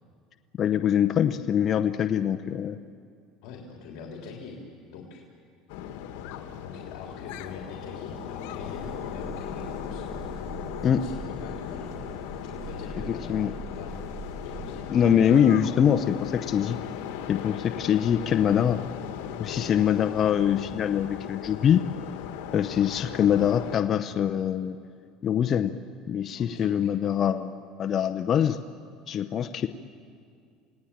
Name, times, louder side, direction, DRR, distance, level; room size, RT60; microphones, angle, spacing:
voice 1, 0.6-2.8 10.8-11.0 13.1-13.5 14.9-16.8 17.3-18.8 19.4-21.8 22.5-24.8 25.2-25.7 26.1-28.6 29.1-29.7, left 9 dB, 40° left, 8 dB, 0.8 m, -24 dB
voice 2, 3.4-4.6 4.9-5.2 6.6-14.0 14.4-15.4 19.5-20.0 20.8-21.1 26.3-27.0, left 5 dB, 65° left, 0 dB, 3.4 m, -43 dB
sound 1, 5.7-23.8, left 9 dB, 80° left, 1.7 m, -37 dB
sound 2, 8.6-14.8, right 3 dB, 60° right, 4.1 m, -42 dB
28.5 x 18.0 x 8.9 m, 2.2 s
supercardioid pair, 120°, 0 cm